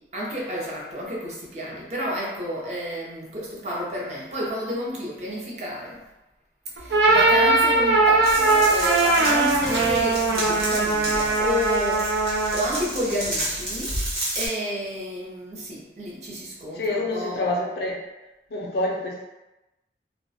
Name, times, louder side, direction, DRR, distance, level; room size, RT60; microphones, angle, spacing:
voice 1, 0.0-6.0 6.7-12.2 12.5-17.4, equal, 40° right, -4 dB, 0.5 m, -30 dB
sound 1, 6.8-12.8, right 3 dB, 85° right, 0.5 m, -20 dB
sound 2, 8.2-14.5, right 1 dB, 60° right, 0.9 m, -31 dB
voice 2, 16.7-18.0 18.5-19.2, left 2 dB, 65° left, -1 dB, 0.5 m, -27 dB
2.3 x 2.1 x 2.6 m, 1.0 s
head